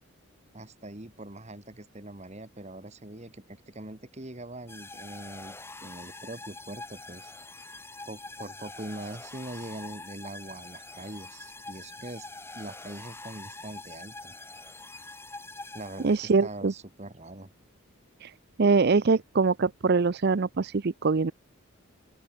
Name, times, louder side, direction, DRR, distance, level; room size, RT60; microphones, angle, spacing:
voice 1, 0.5-7.3 8.1-12.3 12.5-14.3 15.7-17.5, right 1 dB, 30° right, 2.0 m, -42 dB
sound 1, 4.7-16.5, left 2 dB, 10° left, 6.4 m, -45 dB
voice 2, 16.0-16.7 18.2-18.3 18.6-21.3, right 4 dB, 50° right, 0.5 m, -23 dB
open air
head